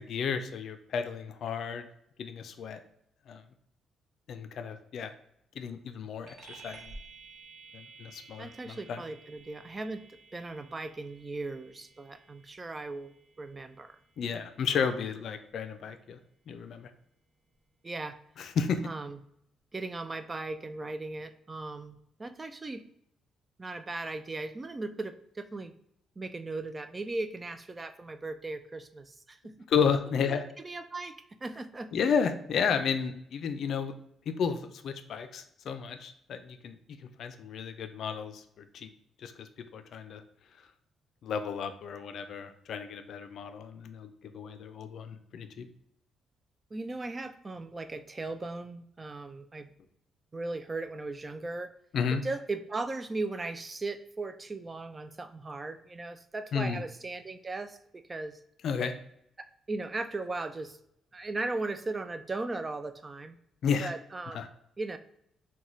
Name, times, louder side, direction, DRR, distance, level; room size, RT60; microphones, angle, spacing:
voice 1, 0.0-1.9 2.2-2.8 3.3-3.4 4.3-5.1 5.6-6.9 7.7-9.0 14.2-16.2 16.5-16.9 18.4-18.9 29.7-30.5 31.9-33.9 34.3-36.8 37.2-38.9 39.2-40.2 41.2-45.7 51.9-52.2 56.5-56.8 58.6-58.9 63.6-63.9 64.3-64.5, left 6 dB, 65° left, 8 dB, 0.4 m, -32 dB
sound 1, 6.3-16.1, right 3 dB, 55° right, 0.9 m, -53 dB
voice 2, 8.4-10.0 10.3-14.0 14.7-14.9 17.8-18.2 18.8-19.2 19.7-22.8 23.6-25.7 26.2-29.7 30.2-30.4 30.6-31.1 31.4-31.9 46.7-49.7 50.3-51.7 52.2-58.4 59.4-60.8 61.1-63.4 63.8-64.4 64.8-65.0, right 3 dB, 25° right, 10 dB, 0.3 m, -37 dB
3.0 x 2.2 x 3.9 m, 0.75 s
cardioid pair, 90°, 0 cm